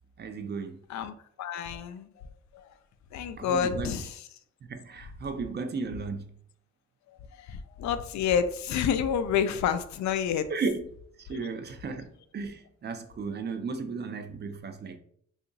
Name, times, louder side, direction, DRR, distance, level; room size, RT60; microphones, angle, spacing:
voice 1, 0.2-0.8 3.4-4.0 4.6-6.3 10.5-10.9 11.2-15.0, right 4 dB, 35° right, 0.5 m, -34 dB
voice 2, 0.9-2.1 2.5-2.7 3.1-4.2 7.1-10.5 11.3-11.5, left 8 dB, 65° left, 0.4 m, -29 dB
2.8 x 2.4 x 3.8 m
cardioid pair, 90°, 30 cm